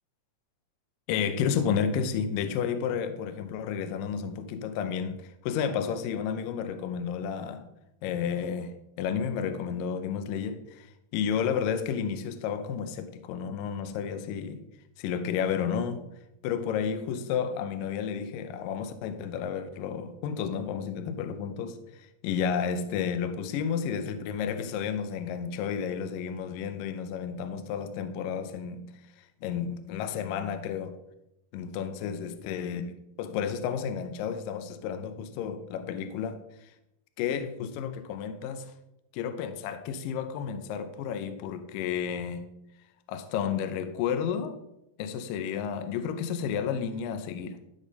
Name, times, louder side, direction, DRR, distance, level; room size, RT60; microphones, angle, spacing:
voice 1, 1.1-7.6 8.0-14.6 15.0-16.0 16.4-28.9 29.4-30.9 31.5-32.8 33.2-36.7 37.2-38.7 39.1-42.4 43.1-44.6 45.0-47.6, left 7 dB, 80° left, 2.2 m, -31 dB
12.5 x 4.2 x 5.2 m
omnidirectional pair, 4.4 m